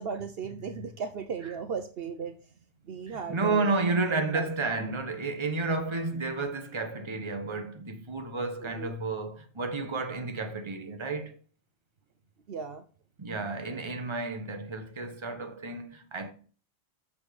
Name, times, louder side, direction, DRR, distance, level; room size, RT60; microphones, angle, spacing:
voice 1, 0.0-2.5 2.8-4.5 8.6-8.9 12.5-12.8, right 6 dB, 60° right, 0.9 m, -37 dB
voice 2, 3.1-11.4 13.2-16.3, right 3 dB, 25° right, 1.1 m, -31 dB
6.7 x 5.6 x 6.4 m
omnidirectional pair, 1.2 m